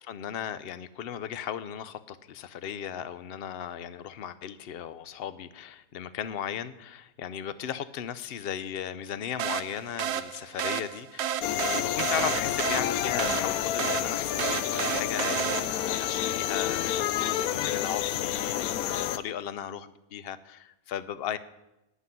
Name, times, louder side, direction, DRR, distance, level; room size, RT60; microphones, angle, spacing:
voice 1, 0.0-21.4, left 9 dB, 55° left, 14 dB, 0.6 m, -36 dB
sound 1, 9.4-16.0, right 9 dB, 60° right, 0.7 m, -32 dB
sound 2, 11.4-19.2, left 11 dB, 75° left, 1.0 m, -29 dB
11.5 x 6.1 x 9.3 m, 0.92 s
omnidirectional pair, 1.6 m